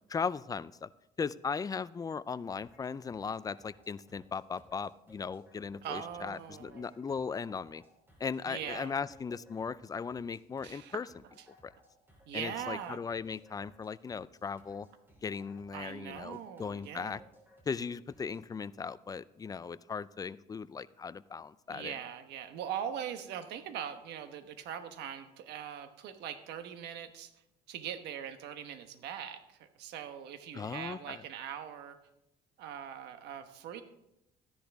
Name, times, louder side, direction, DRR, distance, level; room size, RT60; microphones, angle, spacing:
voice 1, 0.1-0.9 1.2-7.8 8.2-11.1 11.6-11.7 12.3-14.9 15.2-17.2 17.7-22.0 30.5-31.2, left 5 dB, 20° left, 17 dB, 0.4 m, -38 dB
sound 1, 2.6-18.5, equal, 15° right, 3.2 m, -62 dB
voice 2, 5.8-6.9 8.5-8.9 10.6-11.0 12.3-13.0 15.7-17.2 21.7-27.3 27.7-32.0 32.6-33.8, right 9 dB, 85° right, 8 dB, 1.2 m, -41 dB
13.5 x 10.5 x 3.5 m, 0.84 s
cardioid pair, 110°, 17 cm